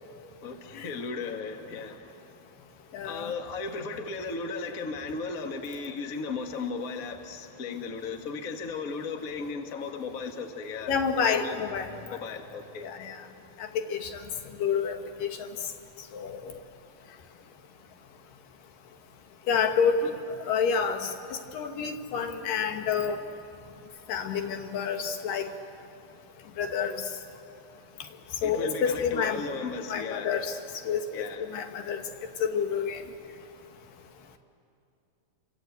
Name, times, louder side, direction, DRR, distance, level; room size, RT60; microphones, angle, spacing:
voice 1, 0.4-2.1 3.0-11.6 12.1-12.9 20.0-20.2 28.4-30.3 31.1-31.5, left 4 dB, 35° left, 4 dB, 1.4 m, -36 dB
voice 2, 2.9-3.3 10.9-12.2 12.8-13.2 13.6-14.2 14.6-15.4 16.1-16.5 19.5-20.1 20.5-23.2 24.1-25.5 26.6-27.0 28.4-29.4 29.9-30.5 30.9-32.0 32.4-33.0, left 6 dB, 85° left, 5 dB, 3.1 m, -29 dB
29.0 x 23.0 x 8.3 m, 2.6 s
omnidirectional pair, 3.8 m